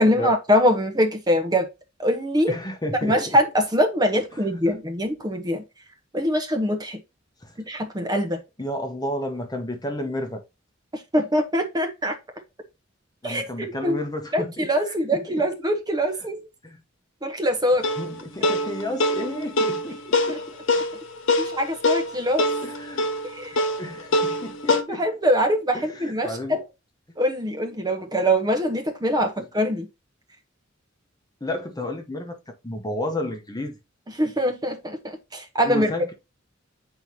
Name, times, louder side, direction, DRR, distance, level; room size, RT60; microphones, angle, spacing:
voice 1, 0.0-1.7 2.0-2.5 3.0-5.6 6.1-7.0 7.7-8.4 10.9-12.2 13.2-13.4 13.8-14.0 14.3-16.5 17.2-17.8 21.4-22.4 23.3-23.5 24.9-26.6 27.2-29.9 34.2-35.9, equal, 20° right, 1.0 m, -23 dB
voice 2, 2.5-3.4 4.3-4.7 7.4-7.6 8.6-10.4 13.2-15.4 16.6-16.8 17.9-20.4 22.6-23.1 23.8-25.0 25.7-26.6 29.4-29.5 31.4-33.8 35.6-36.1, left 1 dB, 20° left, 1.0 m, -32 dB
sound 1, 17.8-24.8, left 2 dB, 70° left, 0.9 m, -24 dB
7.7 x 4.4 x 2.8 m
head